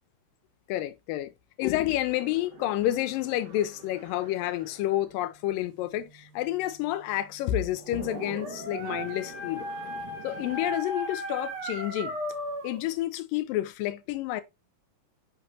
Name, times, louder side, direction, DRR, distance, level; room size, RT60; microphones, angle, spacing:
voice 1, 0.7-1.3 1.6-9.7 10.2-12.2 12.6-14.4, left 14 dB, 90° left, 2.3 m, -29 dB
sound 1, 2.0-10.8, right 5 dB, 70° right, 3.2 m, -48 dB
Dog, 7.7-12.8, equal, 55° right, 1.2 m, -36 dB
6.0 x 5.8 x 2.8 m
omnidirectional pair, 3.9 m